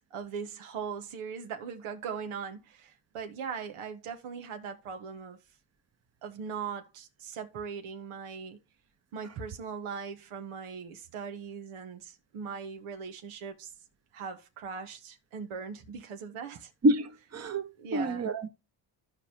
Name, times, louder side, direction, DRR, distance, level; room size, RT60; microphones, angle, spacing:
voice 1, 0.1-5.4 6.2-8.6 9.1-13.7 14.1-16.7 17.8-18.3, right 6 dB, 90° right, 1.5 m, -40 dB
voice 2, 16.8-18.5, right 1 dB, 30° right, 1.0 m, -27 dB
15.0 x 5.0 x 2.9 m
cardioid pair, 75°, 49 cm